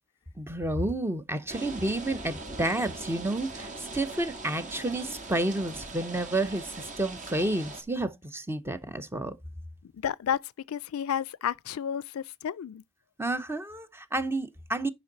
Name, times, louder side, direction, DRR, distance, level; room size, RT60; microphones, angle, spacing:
voice 1, 0.4-9.3 13.2-14.9, right 2 dB, 10° right, 0.8 m, -30 dB
sound 1, 1.5-7.8, right 2 dB, 35° right, 1.8 m, -41 dB
voice 2, 9.9-12.8, left 8 dB, 80° left, 0.4 m, -31 dB
10.0 x 5.4 x 3.9 m
head